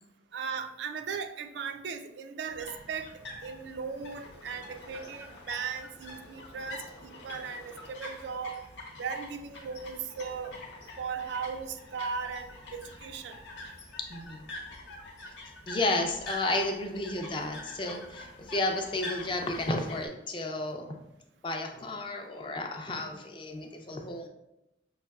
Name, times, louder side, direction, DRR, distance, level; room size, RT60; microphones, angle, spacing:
voice 1, 0.3-3.1 3.4-8.6 9.0-10.5 11.0-13.4, right 6 dB, 65° right, 7 dB, 0.3 m, -37 dB
sound 1, 2.5-20.1, left 2 dB, 75° left, 0.9 m, -45 dB
voice 2, 14.1-14.4 15.7-21.0 21.4-24.3, left 2 dB, 25° left, 3 dB, 0.4 m, -32 dB
5.5 x 2.9 x 2.3 m, 0.87 s
head